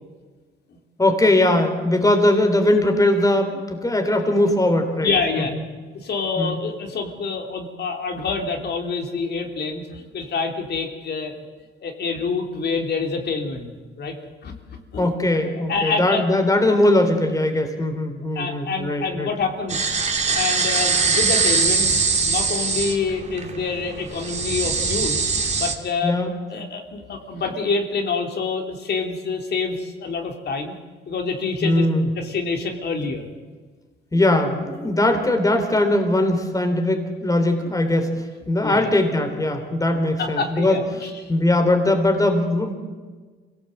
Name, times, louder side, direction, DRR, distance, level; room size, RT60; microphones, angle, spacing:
voice 1, 1.0-5.1 5.4-5.6 6.4-6.6 15.0-19.3 26.0-26.3 31.6-32.1 34.1-38.1 38.5-41.0 41.3-42.7, left 1 dB, 15° left, 5 dB, 3.4 m, -20 dB
voice 2, 5.0-5.5 5.9-11.3 11.8-13.7 14.0-14.2 14.4-15.1 15.7-16.2 18.4-19.8 20.3-22.0 22.2-25.2 25.6-26.2 26.5-30.7 31.1-31.9 32.1-33.3 34.1-34.2 34.8-34.9 38.6-38.9 40.2-41.3, left 4 dB, 60° left, 3 dB, 3.5 m, -27 dB
sound 1, 19.7-25.7, right 4 dB, 35° right, 2.5 m, -22 dB
25.5 x 18.0 x 8.0 m, 1.4 s
cardioid pair, 90°, 20 cm